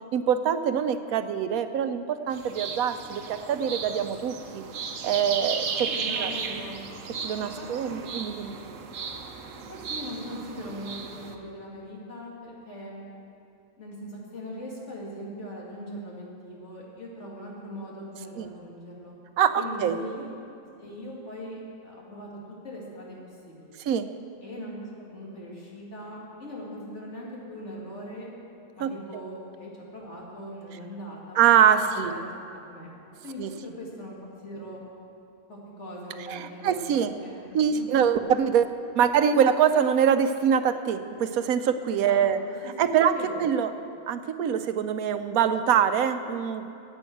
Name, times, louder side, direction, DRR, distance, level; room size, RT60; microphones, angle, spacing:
voice 1, 0.1-4.6 5.0-5.9 6.2-6.3 7.2-8.6 18.4-18.5 19.4-20.0 23.8-24.1 28.8-28.9 31.4-32.1 33.4-33.5 36.3-37.1 37.5-42.4 42.6-43.7 44.1-46.6, right 8 dB, 90° right, 10 dB, 1.1 m, -24 dB
sound 1, 2.3-11.3, right 5 dB, 70° right, 1.2 m, -35 dB
voice 2, 5.9-6.9 7.4-8.6 9.7-13.0 13.8-19.2 19.6-20.4 20.8-22.3 22.6-23.2 23.4-23.8 24.4-28.3 28.8-31.4 31.7-32.9 33.2-34.2 34.4-34.8 35.5-38.3 41.9-42.7 43.1-43.4, equal, 55° left, -4 dB, 2.7 m, -40 dB
11.0 x 8.7 x 7.8 m, 2.6 s
omnidirectional pair, 1.5 m